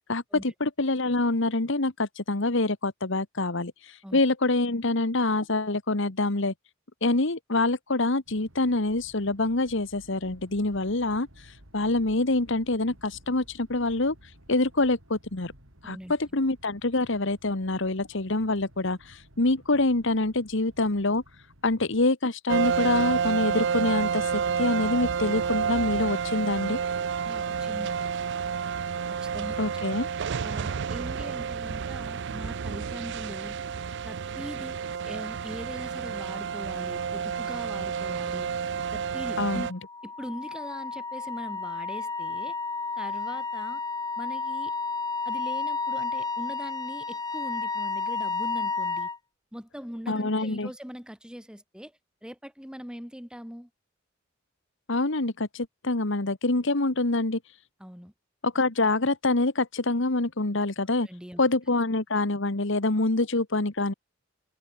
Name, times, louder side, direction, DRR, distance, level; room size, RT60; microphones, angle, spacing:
voice 1, 0.1-6.5 7.0-14.2 14.5-15.5 15.8-21.2 21.6-26.8 29.6-30.1 39.4-39.8 50.1-50.7 54.9-57.4 58.4-61.1 61.4-63.9, left 2 dB, 65° left, 1.7 m, -26 dB
sound 1, 8.3-22.0, equal, 80° right, 7.9 m, -55 dB
sound 2, 22.5-39.7, right 6 dB, 60° right, 0.5 m, -30 dB
voice 2, 27.2-28.1 29.2-29.8 30.2-33.6 34.0-38.6 38.9-39.7 40.0-42.6 43.0-43.8 44.2-44.7 45.2-49.1 49.5-53.7 57.8-58.1 60.9-61.4 63.0-63.1, equal, 5° right, 2.8 m, -41 dB
Wind instrument woodwind instrument, 39.7-49.2, left 4 dB, 20° left, 2.7 m, -32 dB
head